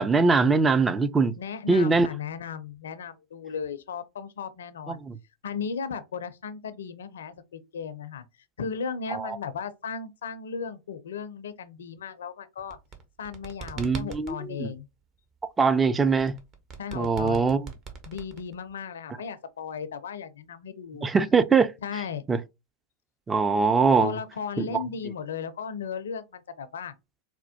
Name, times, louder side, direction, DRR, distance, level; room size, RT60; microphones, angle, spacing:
voice 1, 0.0-1.3 1.7-2.1 4.9-5.2 9.1-9.3 13.8-14.7 15.6-16.3 16.9-17.7 21.0-21.7 22.3-22.4 23.3-24.1 24.6-24.7, right 4 dB, 15° right, 0.4 m, -22 dB
voice 2, 1.4-5.0 5.4-8.2 8.6-12.8 13.2-14.9 16.8-17.5 18.1-21.1 21.8-22.2 24.0-26.9, left 6 dB, 70° left, 0.4 m, -36 dB
sound 1, 12.6-14.4 16.2-18.8, right 5 dB, 35° right, 0.8 m, -41 dB
4.3 x 2.1 x 2.7 m
figure-of-eight pair, 90°, 0 cm